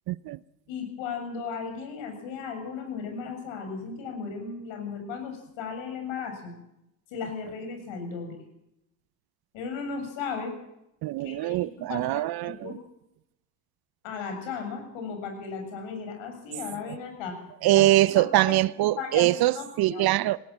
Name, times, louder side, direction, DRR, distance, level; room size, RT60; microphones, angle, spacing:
voice 1, 0.1-0.4 11.0-12.8 16.9-17.0 17.6-20.4, right 16 dB, 50° right, 0.7 m, -23 dB
voice 2, 0.7-6.5 7.1-8.4 9.5-10.5 11.2-12.8 14.0-17.4 17.7-18.6 19.0-19.3 19.6-20.1, left 5 dB, 65° left, 7.5 m, -36 dB
19.5 x 18.0 x 7.4 m
supercardioid pair, 85°, 50 cm